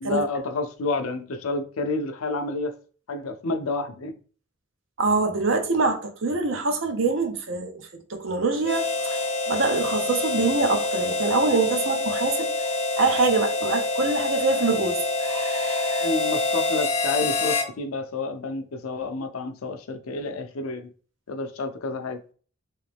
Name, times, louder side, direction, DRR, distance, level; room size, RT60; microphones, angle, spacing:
voice 1, 0.0-2.8 3.1-4.1 16.0-20.9 21.3-22.2, left 3 dB, 90° left, 0.5 m, -29 dB
voice 2, 5.0-16.1, right 3 dB, 70° right, 0.7 m, -25 dB
Harmonica, 8.6-17.7, left 3 dB, 30° left, 0.4 m, -26 dB
3.2 x 2.9 x 3.3 m
head